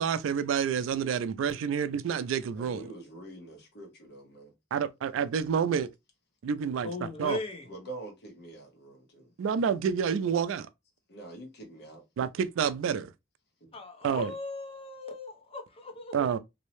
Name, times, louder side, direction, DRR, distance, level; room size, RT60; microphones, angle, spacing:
voice 1, 0.0-2.9 4.7-5.9 6.4-7.4 9.4-10.7 12.2-13.1 14.0-14.3 16.1-16.4, right 7 dB, 85° right, 0.3 m, -28 dB
voice 2, 2.6-4.5 7.6-9.3 11.1-12.0 13.6-13.7, right 2 dB, 60° left, 0.9 m, -45 dB
voice 3, 6.8-7.7 13.7-16.4, left 3 dB, 30° left, 0.6 m, -38 dB
2.6 x 2.1 x 2.9 m
head